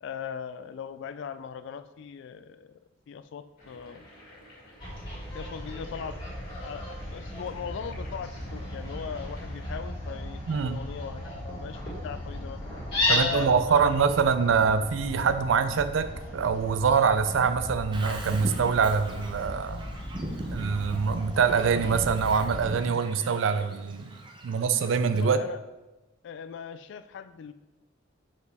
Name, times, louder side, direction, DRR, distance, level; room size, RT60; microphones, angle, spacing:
voice 1, 0.0-2.8 3.1-4.1 5.3-12.6 13.1-14.1 25.2-25.6 26.2-27.5, left 7 dB, 65° left, 12 dB, 0.3 m, -39 dB
sound 1, 3.6-9.8, left 1 dB, 50° left, 2.3 m, -51 dB
Fowl, 4.8-22.7, left 1 dB, 30° left, 2.1 m, -35 dB
voice 2, 10.5-10.8 13.1-19.8 20.5-24.1 24.4-25.4, right 6 dB, 75° right, 11 dB, 0.4 m, -24 dB
Bird vocalization bird call bird song, 17.9-25.3, right 1 dB, 25° right, 0.6 m, -40 dB
6.6 x 4.8 x 3.4 m, 1.1 s
head